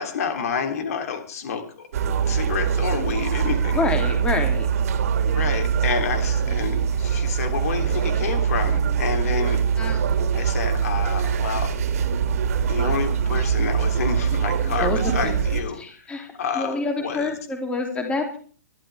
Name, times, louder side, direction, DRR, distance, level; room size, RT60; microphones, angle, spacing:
voice 1, 0.0-4.1 5.3-9.6 10.3-11.7 12.7-17.4, left 6 dB, 60° left, 5 dB, 3.2 m, -29 dB
sound 1, 1.9-15.6, right 7 dB, 55° right, 2.3 m, -23 dB
voice 2, 3.7-4.7 9.8-10.0 14.8-15.3 15.8-16.3 16.6-18.4, left 3 dB, 10° left, 3 dB, 3.0 m, -27 dB
22.0 x 12.5 x 3.5 m, 0.43 s
figure-of-eight pair, 125°, 9 cm